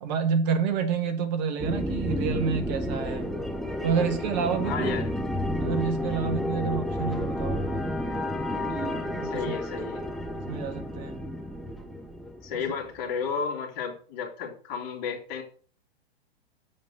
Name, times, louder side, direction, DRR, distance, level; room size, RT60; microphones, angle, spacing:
voice 1, 0.0-3.3 3.8-5.0 5.6-7.9 8.7-9.4 10.5-11.2, right 6 dB, 45° right, 1.6 m, -29 dB
sound 1, 1.6-13.0, left 1 dB, ahead, 0.7 m, -31 dB
voice 2, 4.6-5.1 9.3-10.1 12.4-15.4, left 6 dB, 40° left, 2.8 m, -32 dB
7.5 x 5.1 x 6.3 m
figure-of-eight pair, 115°, 32 cm